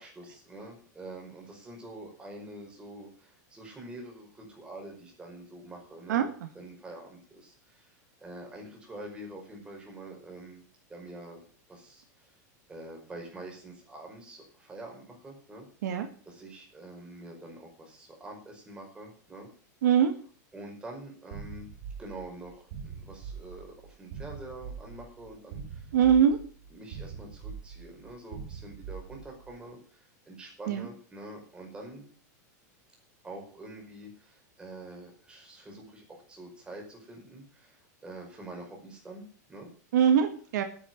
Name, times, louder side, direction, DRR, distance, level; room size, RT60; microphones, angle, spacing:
voice 1, 0.0-7.9 8.2-10.6 10.9-11.4 11.7-12.3 12.7-15.7 16.2-19.5 20.5-21.7 22.0-25.9 26.7-32.0 33.2-39.2 39.5-39.7, right 1 dB, 10° right, 0 dB, 5.3 m, -46 dB
voice 2, 19.8-20.1 25.9-26.4 30.7-30.9 39.9-40.6, right 8 dB, 75° right, 7 dB, 1.9 m, -22 dB
sound 1, 21.3-29.6, right 6 dB, 55° right, 3.2 m, -43 dB
10.0 x 8.8 x 9.5 m, 0.44 s
supercardioid pair, 150°, 9 cm